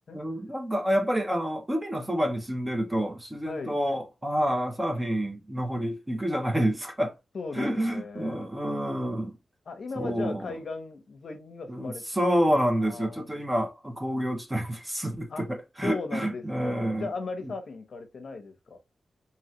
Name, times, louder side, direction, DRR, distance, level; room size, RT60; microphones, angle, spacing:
voice 1, 0.1-7.1 7.6-9.4 10.0-10.5 11.7-17.1, equal, 10° right, 0.5 m, -28 dB
voice 2, 3.4-3.8 7.3-8.4 9.7-12.0 12.8-13.3 15.3-15.5 15.8-18.8, left 4 dB, 50° left, 0.7 m, -37 dB
3.0 x 2.8 x 2.8 m
wide cardioid pair, 175°, 0 cm